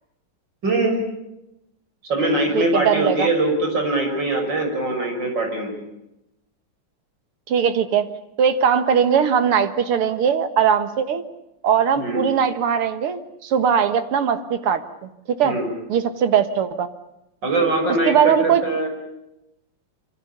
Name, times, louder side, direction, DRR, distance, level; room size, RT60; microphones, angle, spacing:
voice 1, 0.6-1.0 2.0-5.7 12.0-12.2 15.4-15.7 17.4-18.9, right 2 dB, 55° right, 3 dB, 6.8 m, -22 dB
voice 2, 2.5-3.3 7.5-8.1 8.4-11.2 11.6-15.6 15.9-16.9 18.1-18.6, right 7 dB, 85° right, 10 dB, 2.4 m, -20 dB
26.0 x 25.0 x 6.8 m, 0.88 s
omnidirectional pair, 2.4 m